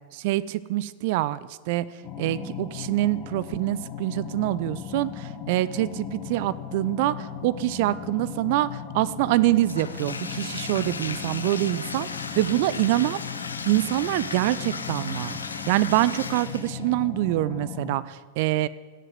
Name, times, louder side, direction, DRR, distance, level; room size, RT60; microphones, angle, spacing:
voice 1, 0.1-1.4 1.7-1.9 2.2-13.2 13.7-18.7, right 16 dB, 50° right, 18 dB, 0.5 m, -25 dB
sound 1, 2.0-18.0, left 8 dB, 35° left, 1.8 m, -37 dB
Bathtub (filling or washing), 9.6-16.9, left 4 dB, 75° left, 1.0 m, -36 dB
16.5 x 7.8 x 7.6 m, 1.4 s
figure-of-eight pair, 90°, 0 cm